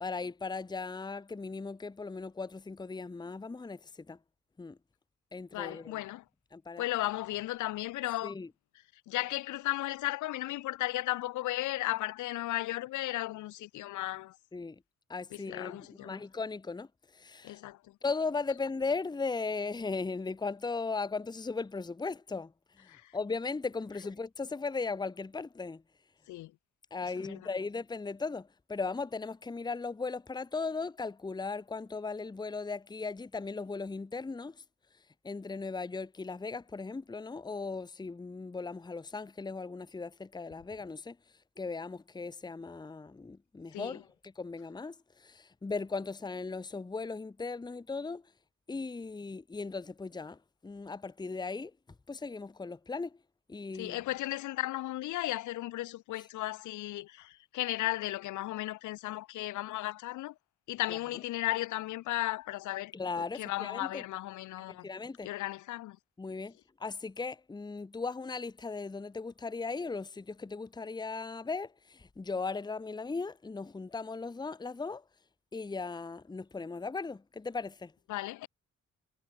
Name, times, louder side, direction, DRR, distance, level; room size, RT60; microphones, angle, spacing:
voice 1, 0.0-4.2 4.6-4.8 5.3-6.0 6.5-6.8 8.2-8.5 14.5-14.8 15.1-16.9 17.1-17.6 18.0-22.5 22.8-25.8 26.9-34.6 35.2-41.2 41.6-48.2 48.7-51.7 52.1-53.2 53.5-54.0 60.9-61.0 62.9-64.0 64.8-65.3 66.2-66.5 66.8-75.0 75.5-77.9, left 4 dB, 15° left, 0.8 m, -37 dB
voice 2, 5.5-6.2 6.8-8.3 9.1-14.4 15.3-16.2 17.4-17.8 22.9-23.0 26.3-26.5 27.2-27.4 43.7-44.0 53.8-60.3 60.7-62.9 63.3-64.8 65.2-66.0 78.1-78.5, left 16 dB, 80° left, 0.7 m, -35 dB
cardioid pair, 90°, 30 cm